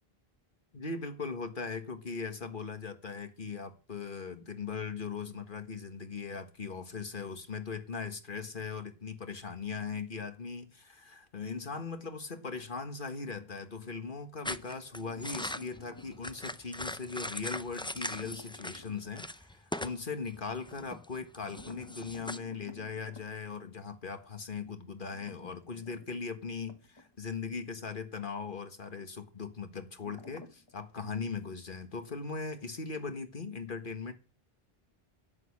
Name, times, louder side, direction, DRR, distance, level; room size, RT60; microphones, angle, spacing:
voice 1, 0.7-34.1, left 5 dB, 55° left, 1.7 m, -39 dB
sound 1, 14.5-18.9 19.2-20.0 20.3-22.4, left 1 dB, 5° left, 0.4 m, -40 dB
sound 2, 15.0-16.3 17.9-19.3 21.4-23.3 25.0-27.5 27.7-27.8 30.0-30.7, left 2 dB, 25° left, 1.1 m, -53 dB
10.5 x 8.5 x 8.5 m
omnidirectional pair, 1.0 m